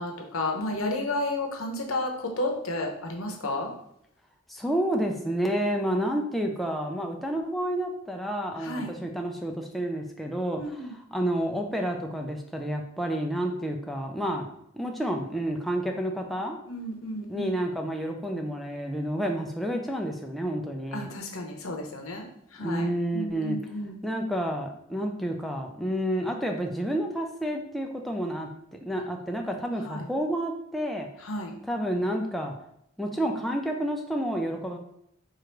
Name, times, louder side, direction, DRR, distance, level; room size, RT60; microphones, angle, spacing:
voice 1, 0.0-3.7 8.6-8.9 10.6-10.9 16.7-17.5 20.9-24.0 29.8-30.1 31.2-31.5, left 1 dB, 85° left, 2 dB, 0.9 m, -32 dB
voice 2, 4.5-14.5 14.7-16.6 17.3-21.1 22.6-23.6 24.0-31.1 31.7-32.5 33.0-34.8, right 1 dB, ahead, 1 dB, 0.4 m, -30 dB
4.7 x 2.5 x 4.5 m, 0.73 s
head